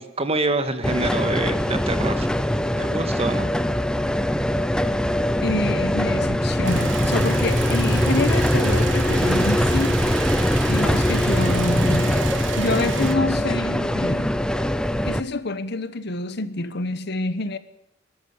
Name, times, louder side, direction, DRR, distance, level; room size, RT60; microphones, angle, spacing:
voice 1, 0.0-2.3 2.8-3.5, right 2 dB, 30° right, 1.8 m, -26 dB
sound 1, 0.8-15.2, left 1 dB, 5° left, 0.7 m, -22 dB
voice 2, 5.4-10.0 10.7-12.2 12.6-14.4 15.0-17.6, left 2 dB, 60° left, 1.2 m, -27 dB
sound 2, 6.6-13.1, right 7 dB, 75° right, 1.2 m, -33 dB
21.0 x 13.5 x 9.7 m
head